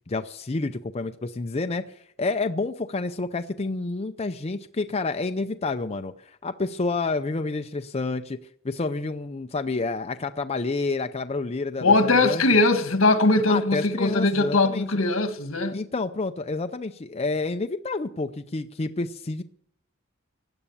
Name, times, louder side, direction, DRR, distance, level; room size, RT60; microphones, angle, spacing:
voice 1, 0.1-8.4 8.6-12.4 13.5-14.9 15.7-19.4, left 3 dB, 30° left, 0.5 m, -29 dB
voice 2, 11.8-15.8, left 2 dB, 75° left, 1.6 m, -21 dB
16.0 x 9.7 x 7.1 m
head